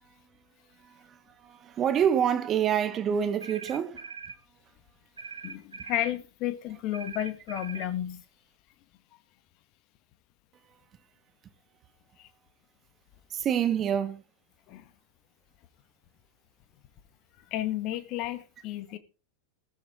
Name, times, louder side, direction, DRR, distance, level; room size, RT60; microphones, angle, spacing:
voice 1, 0.8-4.1 13.3-14.2, right 8 dB, 30° right, 1.4 m, -27 dB
sound 1, 3.4-4.4 5.2-6.2 6.9-7.9, right 5 dB, 75° right, 1.0 m, -42 dB
voice 2, 5.4-8.2 12.2-12.3 14.7-14.8 17.5-19.0, left 13 dB, 40° left, 2.0 m, -32 dB
16.0 x 14.0 x 4.0 m
figure-of-eight pair, 90°, 0 cm